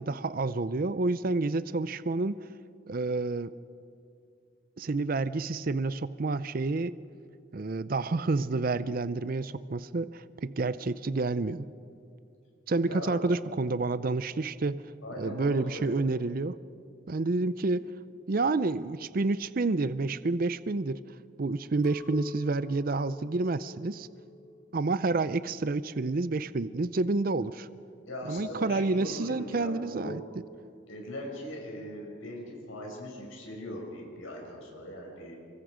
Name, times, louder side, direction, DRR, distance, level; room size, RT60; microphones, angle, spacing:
voice 1, 0.0-2.4 2.9-3.5 4.8-7.0 7.5-11.7 12.7-14.8 15.2-16.6 17.1-17.8 18.3-21.0 21.4-24.1 24.7-27.7 28.3-30.2, right 3 dB, 45° right, 15 dB, 0.5 m, -29 dB
voice 2, 12.9-13.2 15.0-16.1 28.1-30.2 30.9-35.4, left 1 dB, 90° left, -1 dB, 6.2 m, -40 dB
Chink clink, 21.8-27.0, left 1 dB, 25° left, 4.0 m, -49 dB
28.5 x 24.5 x 5.1 m, 2.4 s
head